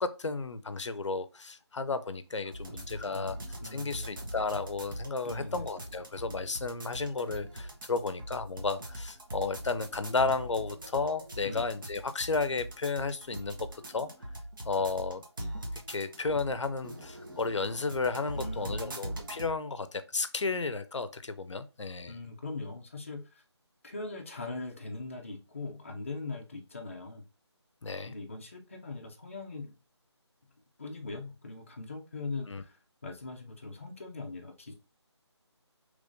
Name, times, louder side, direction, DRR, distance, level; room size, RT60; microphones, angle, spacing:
voice 1, 0.0-3.4 3.7-13.6 13.9-14.1 14.6-15.2 15.7-22.2 27.8-28.1 32.5-32.6, left 4 dB, 85° left, 0.5 m, -33 dB
sound 1, 2.5-19.5, right 1 dB, 45° right, 0.8 m, -42 dB
voice 2, 2.9-4.1 5.2-5.7 11.4-11.7 18.3-19.1 22.1-23.4 23.8-27.2 28.1-29.8 30.8-34.7, left 3 dB, 30° left, 0.5 m, -41 dB
3.5 x 3.1 x 2.6 m
figure-of-eight pair, 170°, 15 cm